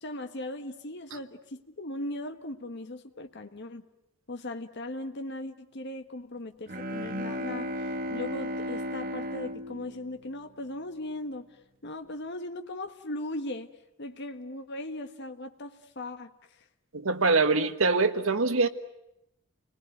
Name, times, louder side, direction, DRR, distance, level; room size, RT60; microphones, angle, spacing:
voice 1, 0.0-3.9 4.3-11.5 11.8-13.7 14.0-16.3, left 1 dB, 55° left, 1.5 m, -38 dB
Bowed string instrument, 6.7-11.0, equal, 45° right, 1.6 m, -35 dB
voice 2, 16.9-18.7, right 3 dB, 85° right, 1.5 m, -24 dB
30.0 x 20.5 x 9.3 m
head